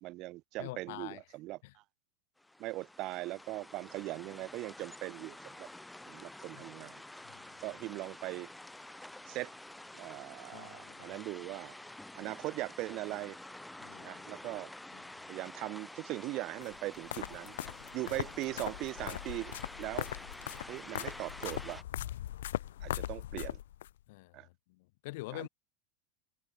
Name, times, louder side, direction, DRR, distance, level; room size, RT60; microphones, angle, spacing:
voice 1, 0.0-1.8 2.6-5.7 6.1-7.0 7.6-8.5 9.3-9.5 9.9-11.8 12.1-13.4 14.0-14.7 15.3-17.5 17.9-20.1 20.7-21.8 22.8-23.6 24.3-24.5 25.3-25.5, right 19 dB, 50° right, 1.4 m, -40 dB
voice 2, 0.6-1.2 1.6-1.7 6.5-6.6 7.2-7.6 10.5-11.2 13.8-14.2 14.9-15.2 24.1-24.4 24.7-25.5, left 21 dB, 70° left, 2.9 m, -46 dB
sound 1, 2.4-21.8, left 1 dB, 5° left, 0.7 m, -49 dB
sound 2, 16.6-23.9, left 13 dB, 85° left, 1.4 m, -40 dB
supercardioid pair, 115°, 0 cm